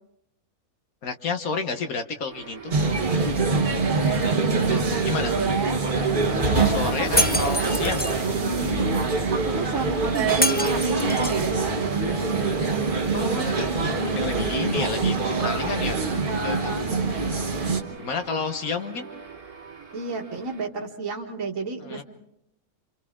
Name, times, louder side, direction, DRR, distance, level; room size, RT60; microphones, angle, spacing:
voice 1, 1.0-2.7 4.7-5.3 6.5-8.0 13.1-16.0 16.4-16.6 17.9-19.1 21.8-22.0, left 4 dB, 70° left, 6 dB, 1.5 m, -31 dB
sound 1, 2.3-20.7, right 5 dB, 85° right, 3.1 m, -42 dB
sound 2, 2.7-17.8, right 3 dB, 35° right, 1.3 m, -24 dB
voice 2, 4.3-5.8 6.8-7.3 7.6-7.8 8.2-8.8 9.3-12.5 15.8-17.9 19.9-22.0, right 4 dB, 60° right, 1 dB, 2.1 m, -32 dB
Shatter, 7.2-8.2 10.4-11.5, left 1 dB, 15° left, 0.4 m, -26 dB
29.5 x 26.5 x 3.7 m, 0.82 s
omnidirectional pair, 1.6 m